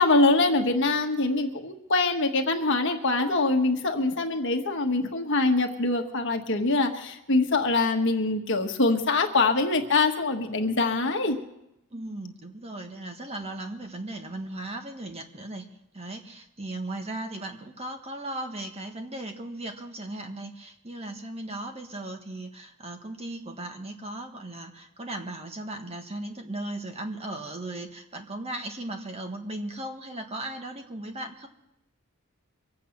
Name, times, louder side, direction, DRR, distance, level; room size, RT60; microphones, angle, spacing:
voice 1, 0.0-11.4, left 3 dB, 55° left, 5 dB, 1.4 m, -24 dB
voice 2, 11.9-15.7 15.9-31.5, right 1 dB, 30° right, 4 dB, 1.5 m, -37 dB
24.0 x 8.5 x 5.9 m, 0.84 s
head